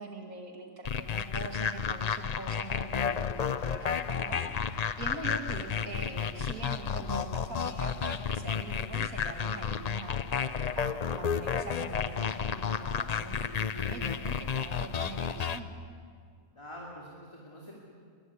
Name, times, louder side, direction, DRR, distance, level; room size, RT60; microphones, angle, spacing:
voice 1, 0.0-15.7, right 3 dB, 65° right, 3 dB, 2.8 m, -43 dB
sound 1, 0.8-15.6, left 7 dB, 85° left, 0.3 m, -32 dB
voice 2, 5.7-6.3 16.5-17.7, equal, 20° left, -3 dB, 2.7 m, -46 dB
22.0 x 16.0 x 9.7 m, 2.1 s
omnidirectional pair, 1.6 m